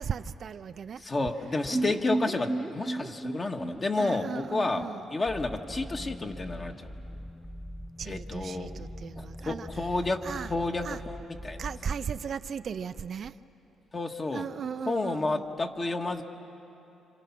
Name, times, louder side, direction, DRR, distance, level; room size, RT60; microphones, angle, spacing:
voice 1, 0.0-1.3 1.7-2.0 4.0-5.0 8.0-9.7 10.2-10.5 10.8-11.0 11.6-13.4 14.3-15.4, right 7 dB, 55° right, 0.5 m, -37 dB
voice 2, 1.0-6.8 8.0-8.7 9.1-11.6 13.9-14.5 14.9-16.2, left 3 dB, 30° left, 1.7 m, -31 dB
sound 1, 1.7-5.6 5.8-5.9 6.2-6.3, right 2 dB, 15° right, 1.0 m, -34 dB
sound 2, 5.3-12.4, equal, 10° left, 0.6 m, -42 dB
29.5 x 26.5 x 6.0 m
cardioid pair, 90°, 0 cm